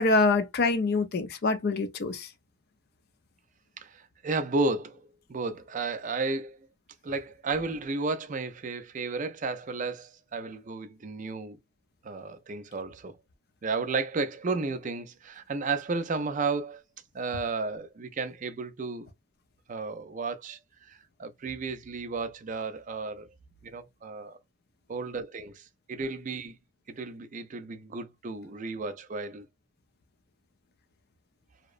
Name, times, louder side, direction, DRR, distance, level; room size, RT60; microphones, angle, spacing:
voice 1, 0.0-2.3, left 3 dB, 45° left, 0.4 m, -25 dB
voice 2, 3.8-6.7 7.0-11.6 12.0-13.2 13.6-16.8 17.1-19.1 19.7-20.6 20.9-23.3 23.6-24.4 24.9-26.6 26.9-29.5, right 3 dB, 35° right, 0.4 m, -33 dB
2.8 x 2.0 x 2.3 m
head